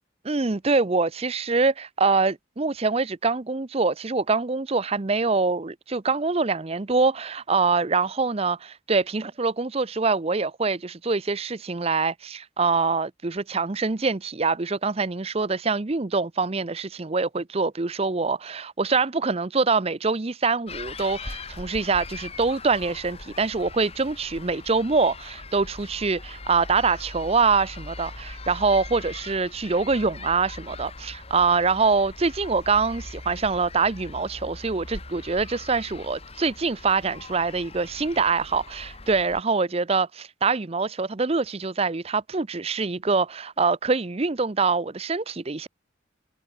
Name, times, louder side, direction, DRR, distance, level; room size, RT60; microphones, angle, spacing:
voice 1, 0.2-45.7, right 4 dB, 30° right, 0.7 m, -24 dB
sound 1, 20.7-39.4, left 3 dB, 30° left, 2.8 m, -41 dB
head